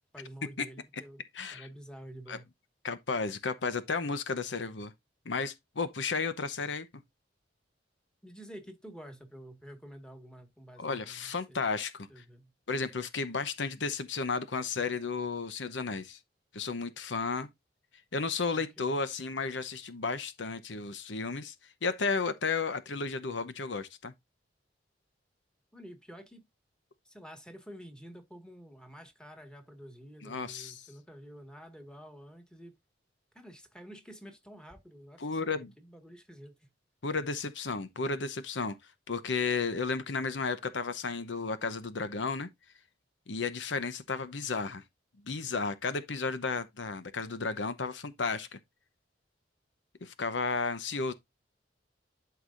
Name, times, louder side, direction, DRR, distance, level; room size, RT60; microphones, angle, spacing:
voice 1, 0.0-1.2 1.5-2.4 8.2-11.7 12.1-12.5 18.5-19.0 25.7-26.4 27.0-32.7 33.3-36.7, equal, 5° left, 1.7 m, -49 dB
voice 2, 1.3-1.7 2.3-2.4 2.8-4.9 5.2-7.0 10.8-12.2 12.7-16.2 16.5-17.5 18.1-21.5 21.8-24.1 30.2-30.8 35.2-35.7 37.0-42.5 43.3-44.8 45.2-48.6 50.0-51.1, left 4 dB, 85° left, 0.9 m, -33 dB
12.0 x 4.8 x 2.5 m
head